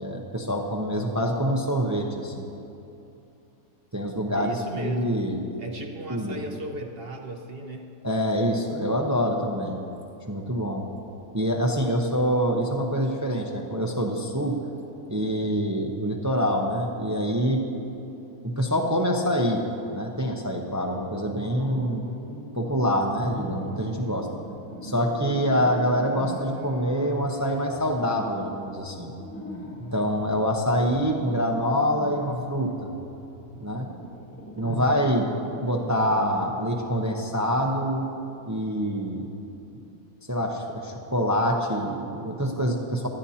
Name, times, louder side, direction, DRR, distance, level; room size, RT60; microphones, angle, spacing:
voice 1, 0.0-2.4 3.9-5.4 6.1-6.4 8.0-9.8 10.3-10.9 11.3-14.6 15.1-17.6 18.4-19.6 19.9-22.1 22.5-24.3 24.8-29.1 29.9-32.9 33.6-33.9 34.6-35.3 35.6-38.1 38.5-39.2 40.3-43.1, equal, 20° right, 1 dB, 0.5 m, -25 dB
voice 2, 4.3-5.3 5.6-7.9, right 2 dB, 55° right, 3 dB, 0.7 m, -36 dB
sound 1, 21.2-22.6 23.0-36.9, left 1 dB, 10° left, 1.2 m, -40 dB
18.0 x 12.0 x 2.9 m, 2.8 s
omnidirectional pair, 1.7 m